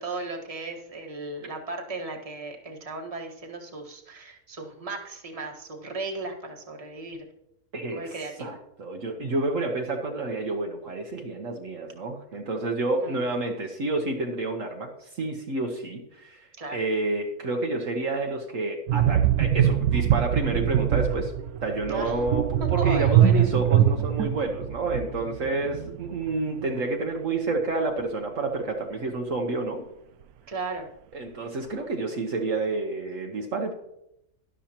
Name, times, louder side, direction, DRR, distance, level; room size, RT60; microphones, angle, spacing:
voice 1, 0.0-7.3 7.9-8.5 13.0-13.3 16.6-16.8 21.9-22.2 22.6-23.5 30.5-30.9, right 3 dB, 25° right, 0 dB, 1.5 m, -36 dB
voice 2, 7.7-21.3 21.6-29.8 31.1-33.7, right 2 dB, 60° right, 2 dB, 1.4 m, -29 dB
sound 1, 18.9-26.3 26.5-26.8, right 10 dB, 80° right, 1.1 m, -23 dB
12.5 x 11.5 x 2.9 m, 0.81 s
omnidirectional pair, 1.6 m